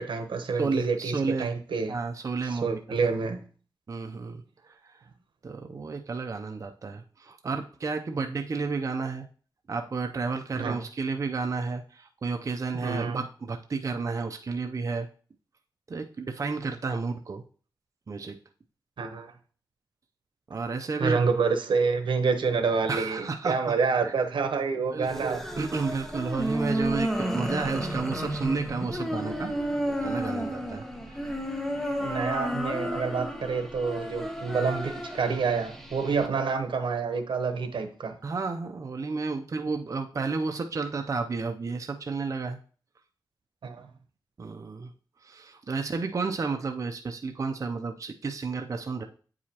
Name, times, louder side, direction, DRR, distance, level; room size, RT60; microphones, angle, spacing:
voice 1, 0.0-2.0 2.4-3.4 10.5-10.8 12.8-13.2 19.0-19.3 21.0-25.4 32.0-38.2 43.6-43.9, right 5 dB, 80° right, 0.9 m, -28 dB
voice 2, 0.5-1.5 1.9-3.1 3.9-5.0 5.4-9.3 9.7-15.1 15.9-17.4 18.1-18.3 20.5-21.2 22.9-23.7 24.0-24.1 24.9-29.5 29.9-31.2 38.2-42.6 44.4-44.9 45.2-49.0, right 4 dB, 40° right, 0.5 m, -32 dB
sound 1, 25.0-36.3, equal, 5° left, 0.9 m, -32 dB
8.2 x 4.8 x 2.8 m
wide cardioid pair, 120°, 8 cm